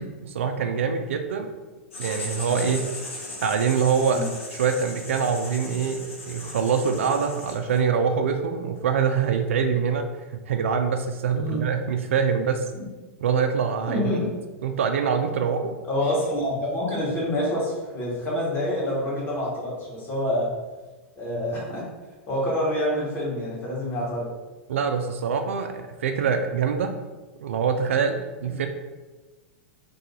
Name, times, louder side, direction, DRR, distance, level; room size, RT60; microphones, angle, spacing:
voice 1, 0.0-1.5 2.0-2.8 3.4-4.2 4.5-10.0 10.3-12.7 13.2-14.2 14.6-15.8 24.7-26.9 27.4-28.7, right 6 dB, 70° right, 6 dB, 0.4 m, -24 dB
Writing, 1.9-7.9, left 2 dB, 75° left, 1.0 m, -38 dB
voice 2, 2.4-2.7 4.1-4.2 11.3-11.6 12.7-12.8 13.9-14.3 15.9-20.5 21.2-21.8 22.3-24.3 28.4-28.6, left 1 dB, 30° left, -5 dB, 1.4 m, -27 dB
2.7 x 2.5 x 4.1 m, 1.2 s
hypercardioid pair, 95°, 7 cm